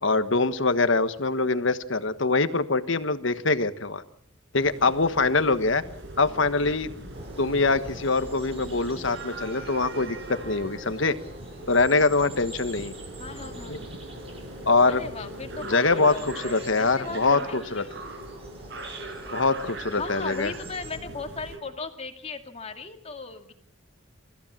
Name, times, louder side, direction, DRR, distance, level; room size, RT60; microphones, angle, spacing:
voice 1, 0.0-4.0 4.5-5.8 6.2-6.9 7.4-11.2 11.7-12.9 14.7-15.0 15.6-17.8 19.3-20.5, left 3 dB, 65° left, 11 dB, 1.4 m, -23 dB
sound 1, 4.6-21.6, right 1 dB, 55° right, 5.8 m, -40 dB
sound 2, 7.1-21.0, right 2 dB, 30° right, 4.7 m, -47 dB
voice 2, 13.2-13.9 14.9-17.9 20.0-23.5, left 3 dB, 30° left, 5 dB, 2.3 m, -37 dB
29.0 x 15.5 x 7.4 m, 0.67 s
head